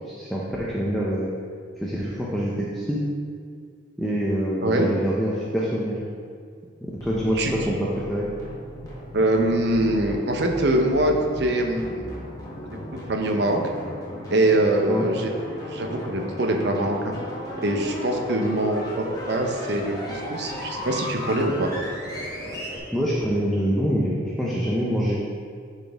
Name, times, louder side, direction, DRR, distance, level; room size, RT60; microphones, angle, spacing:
voice 1, 0.1-1.3 1.8-3.0 4.0-6.0 7.0-8.3 14.9-15.1 22.9-25.2, equal, ahead, -6 dB, 0.6 m, -25 dB
sound 1, 6.9-22.8, equal, 20° left, 1.3 m, -35 dB
voice 2, 9.1-12.1 12.6-13.7 14.3-15.3 15.6-17.1 17.6-21.7, right 1 dB, 55° right, 2 dB, 0.7 m, -23 dB
9.9 x 4.2 x 3.5 m, 2.1 s
head